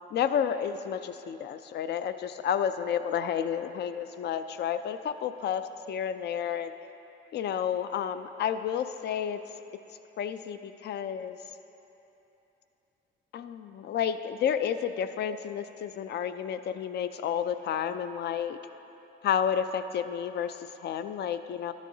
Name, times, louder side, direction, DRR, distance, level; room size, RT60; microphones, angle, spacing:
voice 1, 0.1-6.7 7.3-9.4 10.2-11.4 13.3-18.6 19.2-21.7, left 8 dB, 60° left, 11 dB, 0.4 m, -31 dB
12.5 x 10.5 x 2.7 m, 3.0 s
cardioid pair, 90°, 20 cm